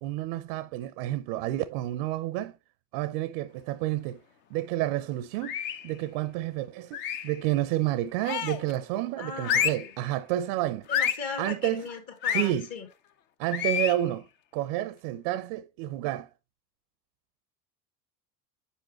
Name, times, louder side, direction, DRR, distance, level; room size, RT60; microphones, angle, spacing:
voice 1, 0.0-2.6 2.9-4.2 4.5-5.6 5.8-7.0 7.2-10.9 11.4-11.8 12.3-12.7 13.4-14.3 14.5-16.3, right 14 dB, 45° right, 0.5 m, -30 dB
sound 1, 5.4-5.9 6.9-7.4 8.2-8.7 9.4-9.9 10.9-11.3 12.2-12.5 13.5-14.0, left 9 dB, 25° left, 0.3 m, -28 dB
voice 2, 9.2-9.9 10.9-12.9, left 5 dB, 45° left, 1.7 m, -38 dB
8.1 x 4.9 x 3.0 m
figure-of-eight pair, 70°, 46 cm